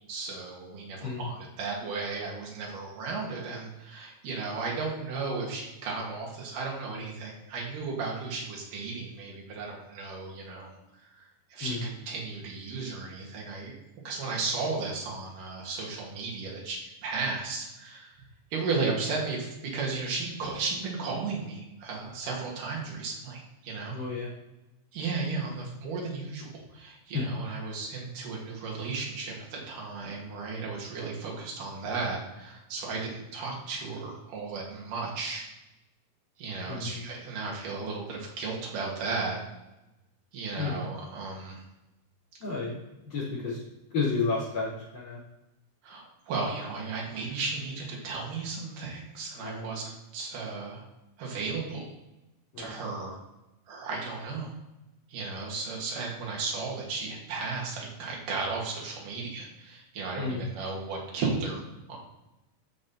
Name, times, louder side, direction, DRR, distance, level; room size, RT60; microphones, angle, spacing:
voice 1, 0.1-10.8 11.1-11.2 11.5-13.7 14.0-18.2 18.5-24.0 24.9-35.5 36.4-39.4 40.3-41.6 45.8-50.9 51.2-51.9 52.6-53.2 53.7-54.5 55.1-61.6 61.9-62.0, right 4 dB, 85° right, -2 dB, 3.4 m, -34 dB
voice 2, 23.9-24.3 27.1-27.2 36.7-37.1 40.6-40.9 42.4-43.6 43.9-45.2 49.4-49.9 52.5-52.8 60.1-60.4, left 4 dB, 65° left, -6 dB, 4.7 m, -32 dB
12.5 x 5.4 x 2.9 m, 0.98 s
omnidirectional pair, 3.6 m